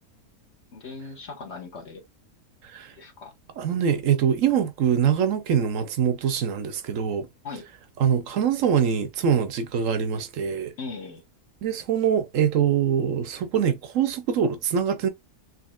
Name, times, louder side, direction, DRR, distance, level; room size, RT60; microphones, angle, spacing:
voice 1, 0.7-2.0 2.9-3.3 7.4-7.6 10.8-11.2, left 4 dB, 50° left, 1.3 m, -38 dB
voice 2, 3.6-7.3 8.0-10.7 11.6-15.1, right 8 dB, 65° right, 0.9 m, -23 dB
4.1 x 3.1 x 2.3 m
omnidirectional pair, 1.7 m